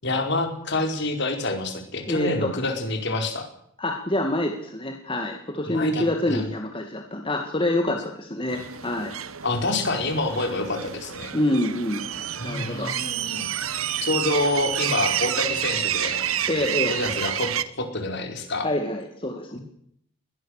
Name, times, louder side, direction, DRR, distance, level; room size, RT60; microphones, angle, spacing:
voice 1, 0.0-3.5 5.7-6.4 9.4-11.3 12.4-13.7 14.0-16.3 16.9-17.5 17.8-18.7, left 2 dB, 55° left, 5 dB, 4.9 m, -27 dB
voice 2, 2.0-2.5 3.8-9.1 11.3-12.0 12.4-12.9 16.5-16.9 18.6-19.6, left 1 dB, 25° left, 3 dB, 2.3 m, -26 dB
sound 1, 8.5-17.6, right 10 dB, 80° right, 1.2 m, -29 dB
21.5 x 20.0 x 6.7 m, 0.67 s
head